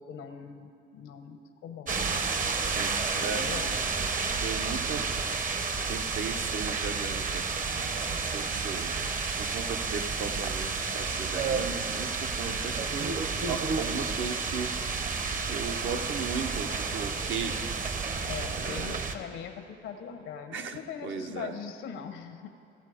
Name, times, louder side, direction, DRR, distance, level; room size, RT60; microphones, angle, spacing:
voice 1, 0.0-2.0 3.0-3.8 18.2-22.5, left 7 dB, 90° left, 8 dB, 0.9 m, -41 dB
sound 1, 1.9-19.2, right 4 dB, 45° right, 0.7 m, -31 dB
voice 2, 2.6-2.9 3.2-3.5 4.4-5.5 5.9-7.4 8.2-9.0 9.4-17.7 18.6-19.0 20.5-21.5, right 5 dB, 75° right, 6 dB, 0.8 m, -37 dB
15.5 x 7.5 x 4.9 m, 2.6 s
cardioid pair, 90°, 20 cm